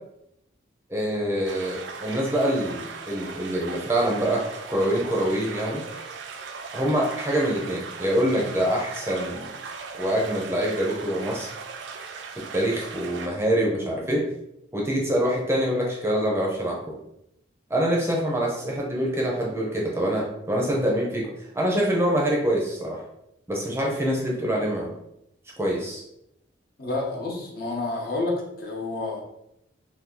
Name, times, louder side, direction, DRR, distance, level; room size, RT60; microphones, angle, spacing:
voice 1, 0.9-5.8 6.7-9.5 10.0-11.5 12.5-14.2 14.7-17.0 17.7-21.3 21.5-23.0 23.5-24.9 25.6-26.0, equal, 15° right, -2 dB, 0.6 m, -25 dB
sound 1, 1.4-13.3, right 5 dB, 70° right, 0.4 m, -38 dB
voice 2, 26.8-29.2, left 2 dB, 50° left, 0 dB, 0.7 m, -29 dB
2.7 x 2.6 x 3.7 m, 0.81 s
head